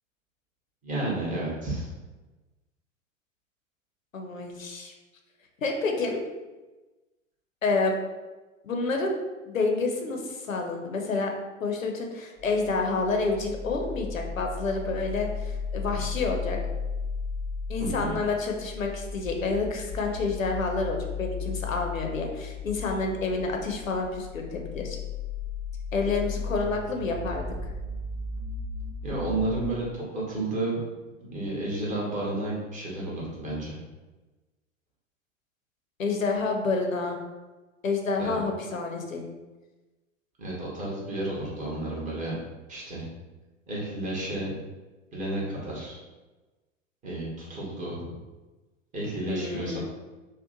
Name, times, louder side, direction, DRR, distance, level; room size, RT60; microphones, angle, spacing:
voice 1, 0.8-1.9 17.8-18.2 29.0-30.8 31.2-33.8 38.2-38.3 40.4-42.3 42.7-43.0 43.7-44.5 45.1-46.0 47.0-48.0 48.9-49.8, right 2 dB, 20° right, -5 dB, 0.9 m, -31 dB
voice 2, 4.1-4.9 5.6-6.2 7.6-8.0 8.6-9.2 9.5-11.3 11.6-16.6 17.7-25.0 25.9-27.5 36.0-37.2 37.8-39.3 48.0-48.2 49.3-49.8, left 3 dB, 85° left, 2 dB, 0.5 m, -29 dB
sound 1, 12.4-29.7, left 5 dB, 30° left, 0.5 m, -35 dB
2.8 x 2.1 x 2.5 m, 1.2 s
figure-of-eight pair, 90°, 39 cm